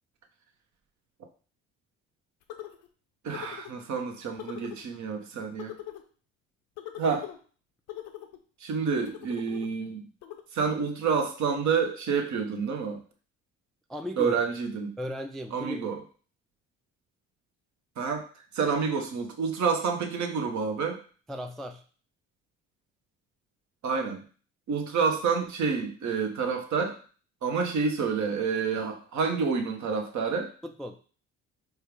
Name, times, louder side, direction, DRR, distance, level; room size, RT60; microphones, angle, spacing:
sound 1, 2.5-2.9 3.3-3.7 4.4-4.8 5.6-6.0 6.8-7.4 7.9-8.4 9.0-9.7 10.2-10.4, left 12 dB, 75° left, 0.6 m, -41 dB
voice 1, 3.2-5.7 7.0-7.3 8.6-10.0 10.5-13.0 14.2-14.9 15.5-16.0 18.0-18.2 18.5-21.0 23.8-24.2 24.7-27.0 27.4-30.5, right 5 dB, 55° right, 4 dB, 0.9 m, -28 dB
voice 2, 13.9-14.4 15.0-15.8 21.3-21.8 30.6-31.0, left 1 dB, ahead, 5 dB, 0.3 m, -36 dB
4.4 x 2.4 x 3.3 m, 0.40 s
hypercardioid pair, 60°, 34 cm